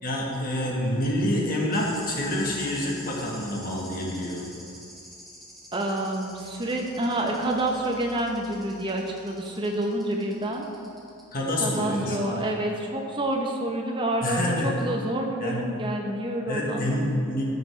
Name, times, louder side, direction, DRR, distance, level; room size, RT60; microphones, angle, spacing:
voice 1, 0.0-4.5 11.3-12.4 14.2-14.8 15.4-15.6 16.5-17.5, left 1 dB, 40° left, -2 dB, 1.4 m, -27 dB
sound 1, 1.7-11.4 11.7-11.9 13.3-13.4, equal, ahead, 1.2 m, -47 dB
voice 2, 5.7-10.7 11.6-17.2, right 1 dB, 20° right, 0 dB, 0.8 m, -28 dB
13.5 x 5.4 x 3.3 m, 2.6 s
head